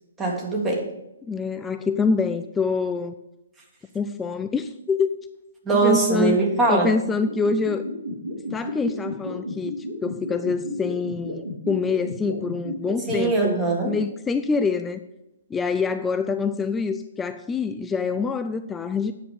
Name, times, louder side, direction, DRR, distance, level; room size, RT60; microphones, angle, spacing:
voice 1, 0.2-0.9 5.7-6.9 13.1-14.0, right 3 dB, 10° right, -1 dB, 1.8 m, -21 dB
voice 2, 1.3-3.1 3.9-5.1 5.7-6.4 6.7-7.8 8.5-13.6 13.9-15.0 15.5-19.1, left 4 dB, 10° left, 9 dB, 0.4 m, -25 dB
sound 1, 7.3-13.1, equal, 75° right, 3.5 m, -32 dB
9.3 x 6.8 x 5.4 m, 0.89 s
figure-of-eight pair, 125°, 0 cm